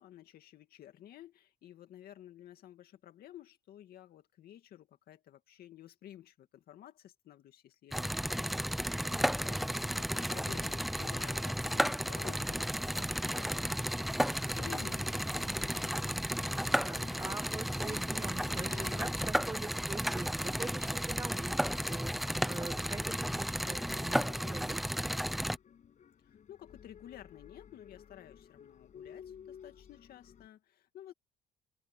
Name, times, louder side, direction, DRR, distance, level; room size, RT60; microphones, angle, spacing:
voice 1, 0.0-15.0 15.3-16.1 26.2-31.1, left 12 dB, 65° left, 2.3 m, -53 dB
sound 1, 7.9-25.6, equal, ahead, 0.7 m, -33 dB
sound 2, 14.7-30.5, left 8 dB, 45° left, 6.8 m, -54 dB
voice 2, 16.8-24.8, right 3 dB, 15° right, 1.4 m, -44 dB
cardioid pair, 110°, 17 cm